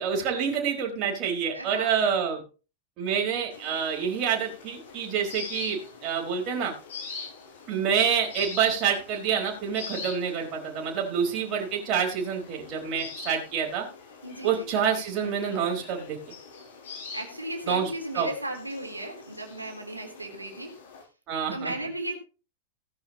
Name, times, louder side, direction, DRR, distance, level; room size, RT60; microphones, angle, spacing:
voice 1, 0.0-2.4 3.0-6.7 7.7-13.8 14.4-16.2 17.6-18.3 21.3-21.7, right 7 dB, 35° right, 0 dB, 4.7 m, -27 dB
voice 2, 1.5-2.0 14.2-14.7 17.1-20.8 21.5-22.1, right 1 dB, 85° right, 3 dB, 3.4 m, -35 dB
sound 1, 3.5-21.0, left 5 dB, 60° left, 7.3 m, -44 dB
17.0 x 10.5 x 3.0 m, 0.34 s
figure-of-eight pair, 90°, 0 cm